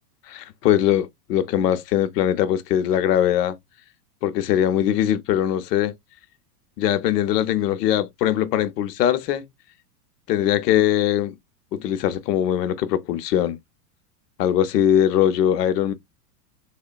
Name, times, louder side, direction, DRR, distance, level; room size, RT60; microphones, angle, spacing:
voice 1, 0.3-3.6 4.2-5.9 6.8-9.4 10.3-11.4 11.7-13.6 14.4-15.9, left 10 dB, 75° left, 0.7 m, -21 dB
3.6 x 2.2 x 2.2 m
supercardioid pair, 175°, 48 cm